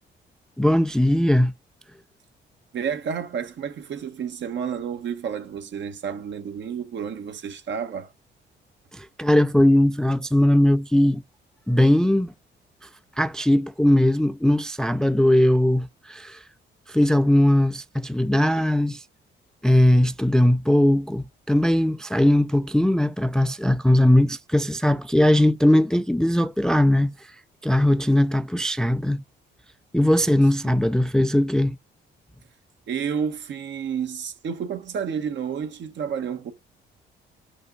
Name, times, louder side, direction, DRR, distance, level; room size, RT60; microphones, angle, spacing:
voice 1, 0.6-1.5 8.9-11.2 11.7-12.3 13.2-16.4 16.9-19.0 19.6-27.1 27.6-29.2 29.9-31.8, left 1 dB, 5° left, 0.3 m, -19 dB
voice 2, 2.7-8.1 30.6-30.8 32.9-36.5, right 7 dB, 65° right, 1.4 m, -30 dB
5.5 x 5.2 x 3.9 m
cardioid pair, 90°, 20 cm